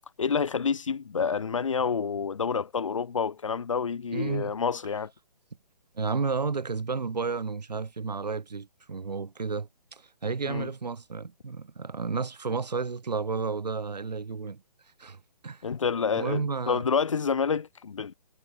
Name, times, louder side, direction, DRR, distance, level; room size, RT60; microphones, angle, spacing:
voice 1, 0.2-5.1 10.5-10.7 15.6-18.1, left 6 dB, 50° left, 2.8 m, -28 dB
voice 2, 4.1-4.5 5.9-14.6 15.0-15.6 16.1-16.8, right 4 dB, 75° right, 5.8 m, -32 dB
hypercardioid pair, 175°, 21 cm